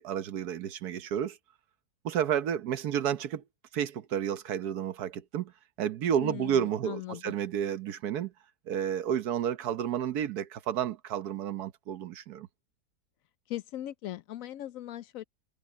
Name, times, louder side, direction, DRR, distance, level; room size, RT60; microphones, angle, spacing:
voice 1, 0.0-1.4 2.0-3.4 3.7-5.5 5.8-8.3 8.7-12.5, right 9 dB, 80° right, 1.4 m, -31 dB
voice 2, 6.2-7.3 13.5-15.2, left 13 dB, 70° left, 0.9 m, -39 dB
omnidirectional pair, 1.6 m